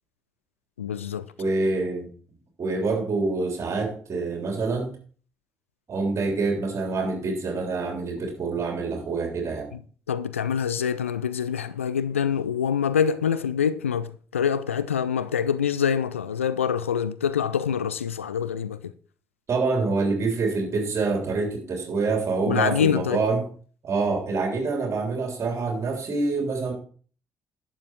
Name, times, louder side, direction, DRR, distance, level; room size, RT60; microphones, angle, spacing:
voice 1, 0.8-1.3 10.1-18.8 22.5-23.2, left 7 dB, 85° left, 0.4 m, -25 dB
voice 2, 1.4-2.1 2.6-4.9 5.9-9.7 19.5-23.4 23.8-26.7, right 3 dB, 45° right, 3.4 m, -26 dB
11.5 x 7.5 x 4.6 m
figure-of-eight pair, 40°, 7 cm